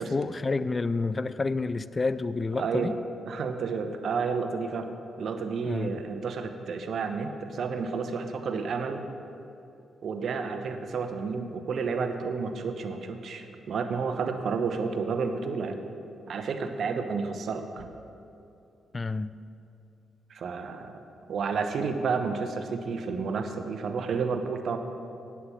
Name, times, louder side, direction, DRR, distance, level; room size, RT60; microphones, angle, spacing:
voice 1, 0.0-3.0 5.6-6.0 18.9-19.3, left 3 dB, 35° left, 16 dB, 0.4 m, -29 dB
voice 2, 2.6-3.0 3.3-4.9 5.2-9.1 10.0-15.8 16.3-17.9 20.3-20.9 21.3-24.8, right 5 dB, 65° right, 7 dB, 0.9 m, -31 dB
9.6 x 8.4 x 5.8 m, 2.7 s
supercardioid pair, 50°, 0 cm